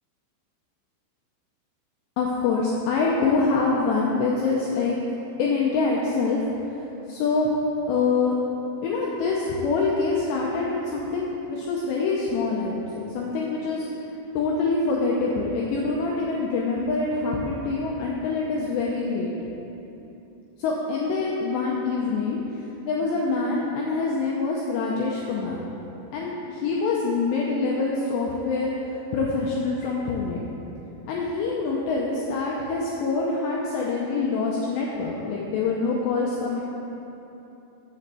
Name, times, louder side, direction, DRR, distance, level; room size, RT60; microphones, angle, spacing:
voice 1, 2.2-5.0 5.4-6.4 7.1-7.5 7.9-8.4 8.8-13.9 14.3-19.3 20.6-22.4 22.9-25.6 26.1-28.7 29.1-30.4 31.1-36.6, left 4 dB, 85° left, -3 dB, 2.4 m, -25 dB
7.2 x 6.6 x 6.9 m, 3.0 s
omnidirectional pair, 5.8 m